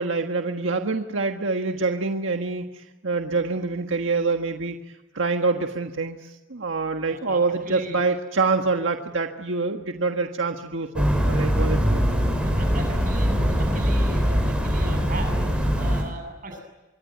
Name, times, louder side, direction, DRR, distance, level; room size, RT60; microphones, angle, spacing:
voice 1, 0.0-4.8 5.1-12.0, right 3 dB, 85° right, 4 dB, 1.5 m, -26 dB
voice 2, 7.0-8.0 12.1-16.6, right 2 dB, 45° right, 5 dB, 7.9 m, -38 dB
sound 1, 11.0-16.0, equal, 5° right, 6.2 m, -22 dB
25.5 x 22.5 x 9.3 m, 1.1 s
head